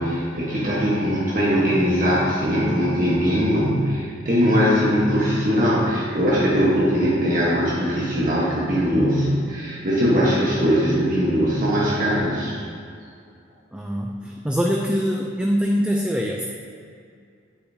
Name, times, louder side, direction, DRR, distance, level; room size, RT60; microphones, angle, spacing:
voice 1, 0.0-12.6, equal, 45° right, -7 dB, 1.3 m, -20 dB
voice 2, 13.7-16.4, equal, 5° right, 0 dB, 0.4 m, -24 dB
8.8 x 8.3 x 2.8 m, 2.4 s
head